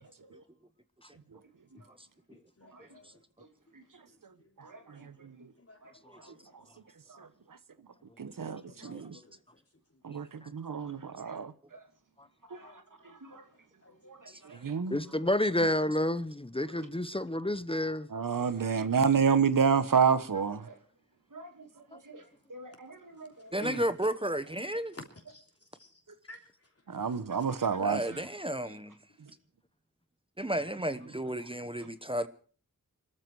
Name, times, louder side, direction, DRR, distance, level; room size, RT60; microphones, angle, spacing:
voice 1, 0.0-0.4 1.7-1.9 2.6-3.0 3.4-3.5 3.7-4.0 4.6-5.5 5.8-5.9 6.2-6.7 7.1-7.3 10.8-11.4 11.7-11.9 12.5-13.5 13.9-14.7 15.1-15.2 16.7-16.8 18.5-18.9 20.5-20.8 21.3-23.7 27.5-27.7 27.9-28.2, right 2 dB, 75° right, 2.5 m, -52 dB
voice 2, 2.3-3.2 4.1-4.9 5.5-6.5 8.3-9.4 10.9-11.0 12.5-12.8 13.3-13.4 13.8-14.0 14.3-14.4 14.7-14.8 16.5-16.7 18.3-18.4 23.1-23.2 23.6-23.8 24.9-25.4 25.8-26.0 26.3-26.7 27.1-27.2, left 2 dB, 45° left, 3.2 m, -50 dB
voice 3, 5.0-5.4 8.2-9.2 10.0-11.5 14.6-15.0 18.1-20.6 26.9-28.0, right 6 dB, 90° right, 1.0 m, -28 dB
voice 4, 14.9-18.1, left 1 dB, 15° left, 0.8 m, -29 dB
voice 5, 23.5-24.9 27.8-28.9 30.4-32.3, right 1 dB, 15° right, 1.0 m, -33 dB
21.5 x 13.5 x 4.7 m
wide cardioid pair, 50°, 32 cm